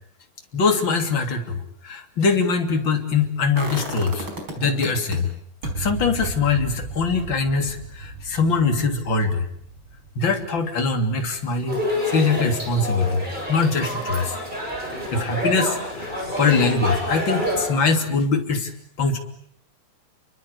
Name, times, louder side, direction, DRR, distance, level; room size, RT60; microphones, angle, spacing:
voice 1, 0.5-4.3 4.6-5.3 5.8-9.4 10.1-11.8 12.0-13.2 13.5-14.4 15.1-18.7 19.0-19.2, left 4 dB, 30° left, 5 dB, 3.3 m, -22 dB
sound 1, 3.6-5.2 5.6-11.5 11.8-11.9, right 2 dB, 30° right, 5.4 m, -34 dB
sound 2, 11.7-17.7, left 1 dB, 10° right, 7.9 m, -27 dB
29.5 x 24.0 x 8.3 m, 0.65 s
omnidirectional pair, 4.4 m